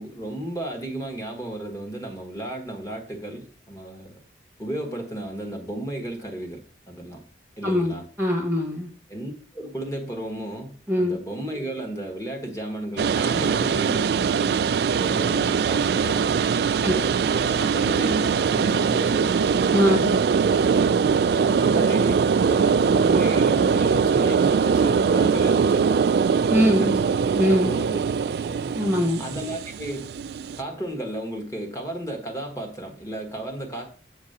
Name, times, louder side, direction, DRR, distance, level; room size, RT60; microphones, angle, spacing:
voice 1, 0.0-4.1 4.6-6.6 6.9-7.2 7.6-8.1 9.1-19.6 21.3-26.1 26.6-27.1 27.4-28.0 28.3-28.6 29.2-30.1 30.6-33.9, right 1 dB, 20° left, 3 dB, 1.4 m, -34 dB
voice 2, 7.6-8.9 10.9-11.2 16.8-16.9 19.7-20.2 26.5-27.0 27.3-27.7 28.7-29.2, equal, ahead, 0 dB, 1.3 m, -22 dB
sound 1, 13.0-30.6, right 6 dB, 60° right, 0.3 m, -22 dB
7.3 x 3.9 x 6.6 m, 0.41 s
head